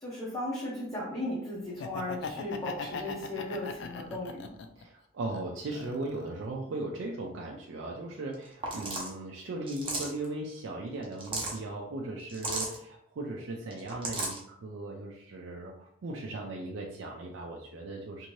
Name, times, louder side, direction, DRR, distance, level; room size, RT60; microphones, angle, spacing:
voice 1, 0.0-4.5, left 1 dB, 15° left, -7 dB, 0.6 m, -36 dB
Laughter, 1.7-4.8 5.3-6.4, left 5 dB, 60° left, 0.3 m, -39 dB
voice 2, 4.8-18.3, right 2 dB, 70° right, 0 dB, 0.4 m, -38 dB
sound 1, 8.3-8.4 8.6-9.1 9.7-10.2 11.0-11.6 12.3-12.8 13.7-14.4, right 2 dB, 25° right, 0.6 m, -34 dB
2.6 x 2.6 x 3.0 m, 0.73 s
head